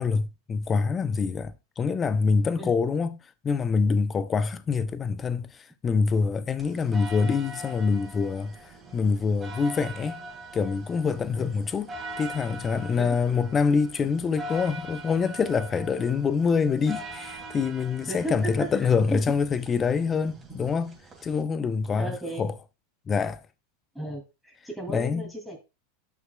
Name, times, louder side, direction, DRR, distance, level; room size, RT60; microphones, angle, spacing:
voice 1, 0.0-3.2 3.4-8.6 8.9-10.2 10.5-11.9 12.2-22.1 22.4-22.5 23.1-23.4 24.9-25.2, left 5 dB, 25° left, 0.6 m, -25 dB
sound 1, 6.6-21.4, right 1 dB, 20° right, 2.6 m, -42 dB
voice 2, 18.1-19.2 22.0-22.5 23.9-25.6, right 1 dB, ahead, 2.6 m, -35 dB
11.0 x 6.0 x 2.3 m
figure-of-eight pair, 90°, 0 cm